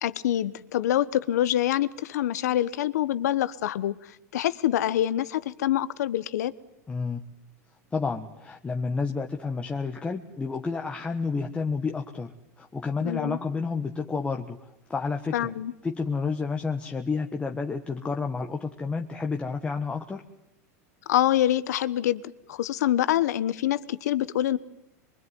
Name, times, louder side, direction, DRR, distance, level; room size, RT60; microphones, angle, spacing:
voice 1, 0.0-4.0 4.3-6.5 13.0-13.4 15.3-15.7 21.1-22.2 22.5-24.6, left 12 dB, 85° left, 16 dB, 1.2 m, -25 dB
voice 2, 6.9-7.2 7.9-14.6 14.9-15.5 15.8-20.2, left 4 dB, 15° left, 3 dB, 1.3 m, -30 dB
23.5 x 23.5 x 9.5 m, 0.82 s
supercardioid pair, 130°, 9 cm